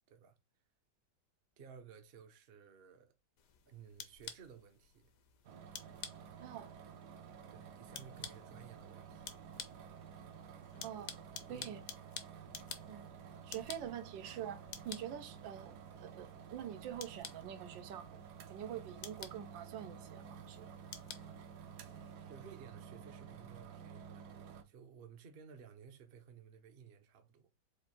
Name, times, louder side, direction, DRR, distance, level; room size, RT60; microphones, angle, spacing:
voice 1, 1.6-3.1 3.7-5.1 7.5-9.4 11.4-11.8 22.3-27.5, right 7 dB, 50° right, 0.7 m, -56 dB
sound 1, 3.4-22.1, left 7 dB, 60° left, 1.0 m, -53 dB
sound 2, 5.4-24.6, right 7 dB, 70° right, 1.2 m, -52 dB
voice 2, 6.4-6.7 10.8-11.1 11.5-11.8 12.9-13.1 13.4-18.1 18.5-20.7, right 10 dB, 90° right, 1.4 m, -45 dB
4.5 x 2.6 x 4.3 m
omnidirectional pair, 1.9 m